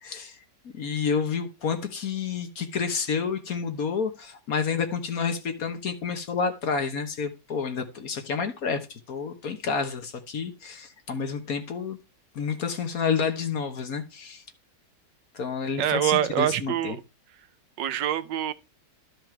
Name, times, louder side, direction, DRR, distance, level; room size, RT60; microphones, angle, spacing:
voice 1, 0.0-12.0 12.3-14.4 15.3-17.0, left 5 dB, 55° left, 1.6 m, -29 dB
voice 2, 15.8-17.0 17.8-18.5, right 11 dB, 80° right, 1.4 m, -25 dB
12.5 x 5.0 x 4.5 m
omnidirectional pair, 2.0 m